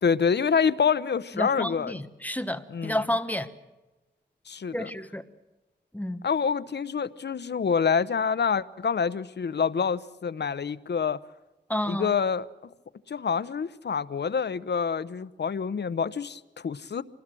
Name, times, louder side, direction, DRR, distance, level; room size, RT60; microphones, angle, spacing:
voice 1, 0.0-2.0 2.7-3.0 4.5-4.9 6.2-11.2 11.9-12.5 13.1-17.0, left 6 dB, 70° left, 0.9 m, -27 dB
voice 2, 1.3-3.5 4.7-5.2 5.9-6.2 11.7-12.1, left 1 dB, 10° left, 1.3 m, -30 dB
27.0 x 19.5 x 7.7 m
wide cardioid pair, 95°, 19 cm